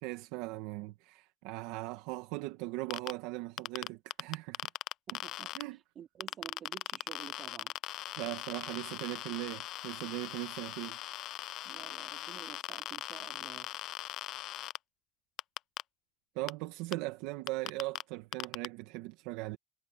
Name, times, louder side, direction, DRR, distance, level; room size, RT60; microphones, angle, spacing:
voice 1, 0.0-4.6 5.5-5.8 8.2-11.0 16.3-19.6, right 20 dB, 70° right, 1.7 m, -39 dB
sound 1, 2.9-3.1 3.6-5.6 6.2-14.8 15.4-15.8 16.5-16.6 16.9-17.0 17.5-18.0 18.3-18.7, left 15 dB, 55° left, 0.3 m, -40 dB
voice 2, 5.1-5.5 6.0-7.7 11.6-13.7, right 9 dB, 40° right, 4.2 m, -51 dB
supercardioid pair, 110°, 0 cm